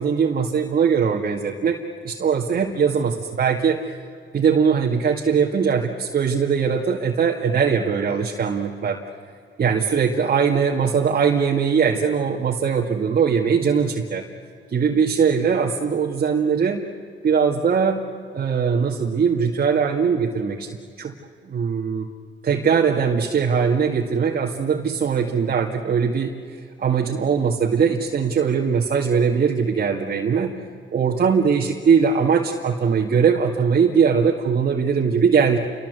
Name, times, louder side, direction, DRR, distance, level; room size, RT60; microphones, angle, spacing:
voice 1, 0.0-3.8 4.3-9.0 9.6-14.2 14.7-16.8 17.2-18.0 18.3-20.7 21.0-21.1 21.4-22.1 22.4-26.3 26.8-30.5 30.9-35.6, right 6 dB, 50° right, -1 dB, 2.1 m, -20 dB
29.0 x 24.0 x 8.1 m, 2.1 s
cardioid pair, 90°, 20 cm